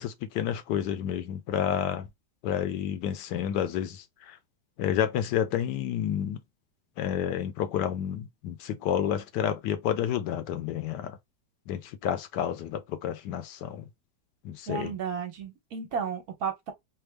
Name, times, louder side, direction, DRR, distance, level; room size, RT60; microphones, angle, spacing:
voice 1, 0.0-2.1 2.4-4.0 4.8-6.4 7.0-11.2 11.7-13.8 14.4-14.9, left 9 dB, 75° left, 1.2 m, -30 dB
voice 2, 14.7-16.7, right 6 dB, 60° right, 1.3 m, -33 dB
3.5 x 2.0 x 3.2 m
omnidirectional pair, 1.9 m